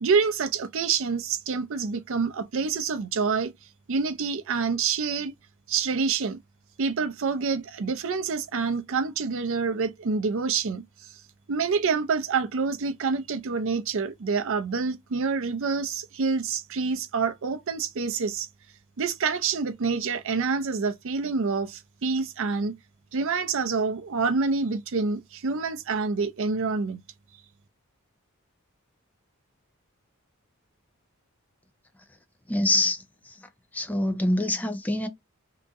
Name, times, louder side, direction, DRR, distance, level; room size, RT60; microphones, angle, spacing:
voice 1, 0.0-3.5 3.9-5.3 5.7-6.4 6.8-10.8 11.5-18.5 19.0-22.7 23.1-27.0, right 5 dB, 65° right, 0.5 m, -27 dB
voice 2, 32.5-33.4 33.7-35.1, left 1 dB, 10° left, 0.5 m, -25 dB
2.9 x 2.5 x 3.5 m
head